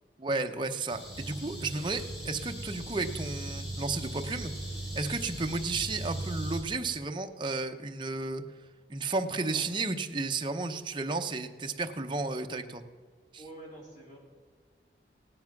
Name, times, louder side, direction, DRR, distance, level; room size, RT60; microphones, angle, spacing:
voice 1, 0.2-4.5 4.9-8.4 8.9-12.8 13.3-13.4, right 3 dB, 25° right, 5 dB, 0.8 m, -33 dB
sound 1, 0.9-6.6, right 1 dB, 75° left, 5.0 m, -38 dB
voice 2, 1.6-2.0 3.9-4.0 9.3-9.7 13.4-14.2, right 1 dB, 45° left, -3 dB, 3.6 m, -49 dB
16.5 x 9.9 x 5.9 m, 1.5 s
head